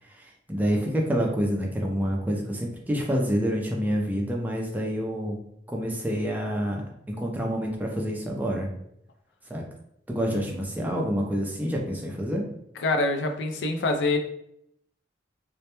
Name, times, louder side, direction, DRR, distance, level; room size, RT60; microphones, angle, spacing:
voice 1, 0.1-5.4 5.7-8.7 9.5-9.6 10.1-12.4, equal, 10° right, -1 dB, 0.4 m, -27 dB
voice 2, 10.3-10.6 12.8-14.2, left 2 dB, 75° left, 5 dB, 0.4 m, -26 dB
2.1 x 2.1 x 2.8 m, 0.75 s
head